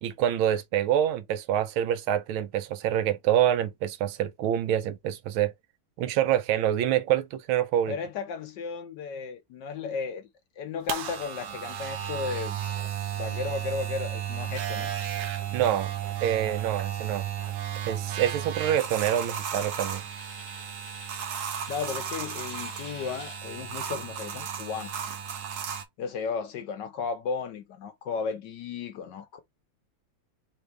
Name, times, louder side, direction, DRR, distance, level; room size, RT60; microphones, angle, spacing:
voice 1, 0.0-5.5 6.0-8.0 15.5-15.9 16.2-17.3 17.8-20.0, right 11 dB, 80° right, 1.5 m, -26 dB
voice 2, 7.9-10.3 10.6-12.6 13.2-14.9 21.7-24.9 26.0-29.4, left 5 dB, 65° left, 1.2 m, -34 dB
sound 1, 10.9-25.8, right 9 dB, 60° right, 1.1 m, -34 dB
Coin (dropping), 17.9-23.4, left 2 dB, 30° left, 0.5 m, -49 dB
3.7 x 3.5 x 3.3 m
omnidirectional pair, 2.3 m